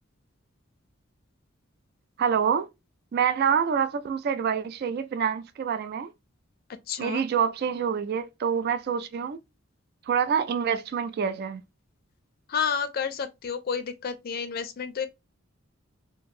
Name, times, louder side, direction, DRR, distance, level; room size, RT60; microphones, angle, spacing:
voice 1, 2.2-2.7 3.1-6.1 7.0-9.4 10.1-11.6, right 7 dB, 50° right, 0.3 m, -26 dB
voice 2, 6.9-7.2 12.5-15.1, left 6 dB, 50° left, 0.4 m, -30 dB
2.9 x 2.7 x 2.5 m
head